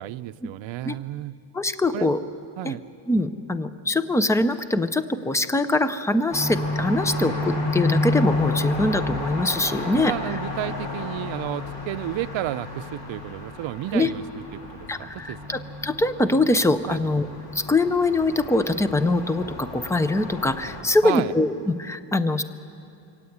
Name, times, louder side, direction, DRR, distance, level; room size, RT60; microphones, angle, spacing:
voice 1, 0.0-1.4 1.9-2.1 2.6-2.8 9.9-14.2 14.7-15.4 16.9-17.0 21.0-21.3, right 15 dB, 75° right, 12 dB, 0.6 m, -31 dB
voice 2, 1.5-2.2 2.6-2.8 3.1-10.3 13.9-14.1 14.9-17.3 17.5-22.4, left 2 dB, 5° left, 12 dB, 0.5 m, -23 dB
sound 1, 6.3-20.8, left 2 dB, 55° left, 3.1 m, -31 dB
24.0 x 17.5 x 8.5 m, 2.6 s
wide cardioid pair, 170°, 46 cm